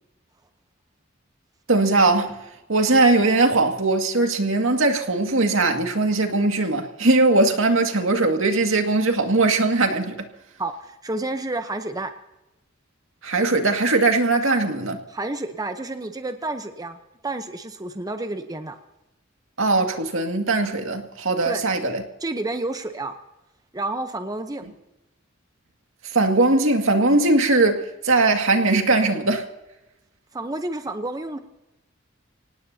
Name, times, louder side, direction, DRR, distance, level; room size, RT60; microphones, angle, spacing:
voice 1, 1.7-2.4 2.7-10.2 13.2-15.0 19.6-22.0 26.0-29.5, right 2 dB, 75° right, 2.2 m, -20 dB
voice 2, 10.6-12.1 14.5-14.6 15.1-17.0 17.2-18.8 21.4-21.6 22.2-23.2 23.7-24.6 30.3-31.4, right 2 dB, 20° right, 0.9 m, -30 dB
25.5 x 18.5 x 2.8 m
head